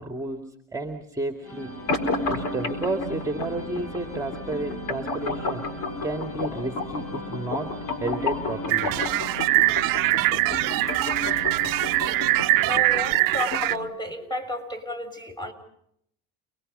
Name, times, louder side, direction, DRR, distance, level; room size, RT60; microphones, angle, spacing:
voice 1, 0.0-1.8 2.3-5.6 6.0-7.7 8.0-8.9, right 2 dB, 10° right, 5 dB, 2.4 m, -31 dB
sound 1, 1.4-13.4, left 2 dB, 40° left, 7.7 m, -39 dB
sound 2, 1.9-13.9, left 2 dB, 60° left, 4.3 m, -32 dB
sound 3, 8.7-13.8, right 20 dB, 60° right, 0.9 m, -23 dB
voice 2, 12.6-15.5, equal, 10° left, 3 dB, 6.1 m, -32 dB
30.0 x 21.5 x 5.6 m, 0.72 s
supercardioid pair, 80°, 37 cm